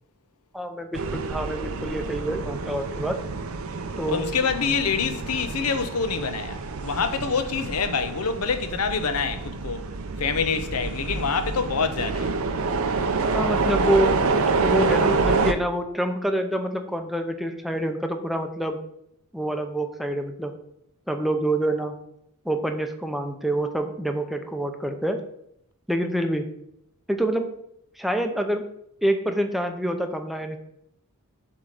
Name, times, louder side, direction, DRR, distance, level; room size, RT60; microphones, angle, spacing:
voice 1, 0.5-3.2 4.0-4.3 13.3-14.1 14.6-18.8 19.3-20.5 21.1-21.9 22.4-25.2 25.9-26.5 27.1-27.5 28.0-28.7 29.0-30.6, right 1 dB, ahead, 0.6 m, -26 dB
sound 1, 0.9-15.5, right 4 dB, 70° right, 0.6 m, -27 dB
voice 2, 4.1-9.8 10.2-12.3, left 5 dB, 85° left, 0.8 m, -26 dB
7.8 x 3.7 x 6.5 m
head